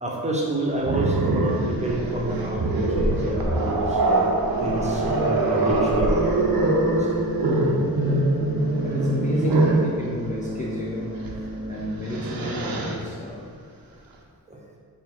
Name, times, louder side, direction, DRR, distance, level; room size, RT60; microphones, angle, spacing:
voice 1, 0.0-4.0 4.6-7.3 14.5-14.6, right 1 dB, 20° right, -2 dB, 0.8 m, -28 dB
Growling, 0.8-9.9 11.2-11.4 11.8-13.0, right 2 dB, 65° right, 0.8 m, -23 dB
sound 1, 2.0-12.6, equal, 65° left, 1.3 m, -34 dB
voice 2, 7.4-8.0 8.8-11.2 11.7-13.5, left 1 dB, 20° left, -4 dB, 0.4 m, -33 dB
6.1 x 3.5 x 4.4 m, 2.2 s
wide cardioid pair, 155°, 38 cm